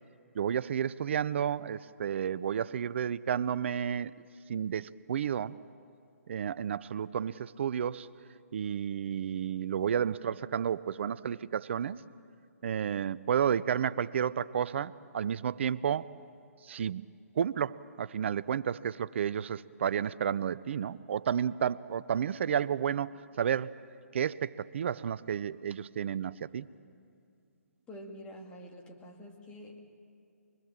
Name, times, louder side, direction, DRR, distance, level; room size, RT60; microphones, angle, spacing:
voice 1, 0.3-4.1 4.5-5.6 6.3-8.1 8.5-12.0 12.6-16.1 16.6-17.1 17.4-23.7 24.1-26.7, right 8 dB, 45° right, 17 dB, 0.6 m, -31 dB
voice 2, 27.9-29.8, equal, 10° left, 1 dB, 2.2 m, -47 dB
24.0 x 22.0 x 7.4 m, 2.4 s
figure-of-eight pair, 145°, 9 cm